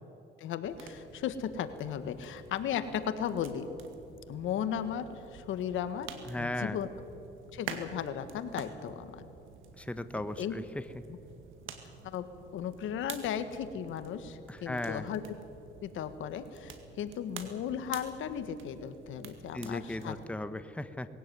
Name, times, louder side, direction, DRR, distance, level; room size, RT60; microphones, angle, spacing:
voice 1, 0.4-3.7 4.3-6.1 6.4-6.9 7.5-9.2 10.4-10.6 11.1-11.2 12.0-15.2 15.8-20.2, left 9 dB, 80° left, 10 dB, 1.6 m, -36 dB
sound 1, 0.6-20.3, right 6 dB, 85° right, 2.0 m, -49 dB
voice 2, 6.2-6.8 9.8-10.6 14.5-15.1 19.5-21.1, left 1 dB, 5° left, 11 dB, 1.1 m, -36 dB
21.0 x 17.0 x 9.3 m, 2.9 s
cardioid pair, 90°, 20 cm